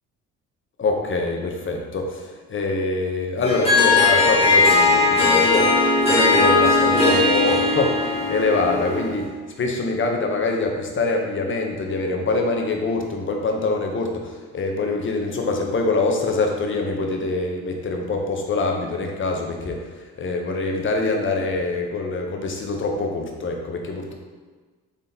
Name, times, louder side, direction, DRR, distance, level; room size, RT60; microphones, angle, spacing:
voice 1, 0.8-5.8 6.1-19.9 20.2-24.1, left 3 dB, 35° left, 2 dB, 0.7 m, -24 dB
Harp, 3.4-9.2, left 3 dB, 15° left, 1.2 m, -18 dB
3.7 x 3.4 x 2.7 m, 1.4 s
supercardioid pair, 65°, 35 cm